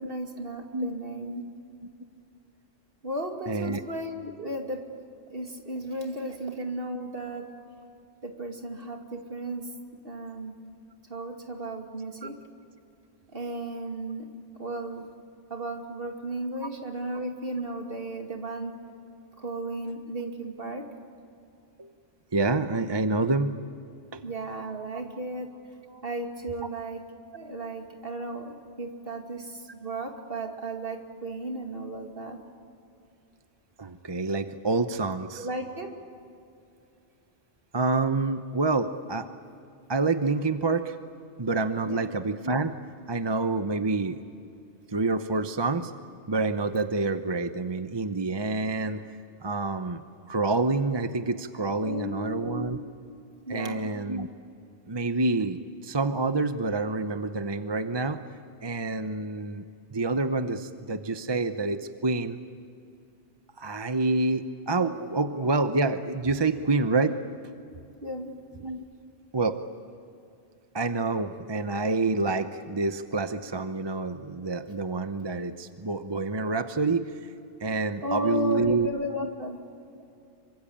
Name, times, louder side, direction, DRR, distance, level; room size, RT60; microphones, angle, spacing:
voice 1, 0.0-1.4 3.0-4.8 5.3-7.5 8.2-9.7 10.0-10.6 11.1-12.4 13.3-14.3 14.6-15.1 15.5-18.8 19.4-20.9 24.2-25.5 26.0-27.0 27.3-32.4 35.4-35.9 41.9-42.1 51.8-52.8 53.4-53.8 68.0-68.3 78.0-79.6, right 1 dB, 50° right, 3 dB, 2.7 m, -34 dB
voice 2, 3.5-3.8 21.8-21.9 22.3-23.6 24.1-24.2 33.8-35.5 37.7-39.3 39.9-41.0 41.4-42.7 43.1-44.2 44.9-45.9 46.3-49.0 49.4-50.0 50.3-52.8 53.5-54.3 54.9-58.2 58.6-59.6 59.9-62.4 63.6-67.2 68.6-68.8 69.3-69.6 70.7-77.1 77.6-78.9 79.2-79.3, right 3 dB, 25° right, 9 dB, 0.8 m, -27 dB
26.5 x 24.5 x 8.8 m, 2.5 s
omnidirectional pair, 1.2 m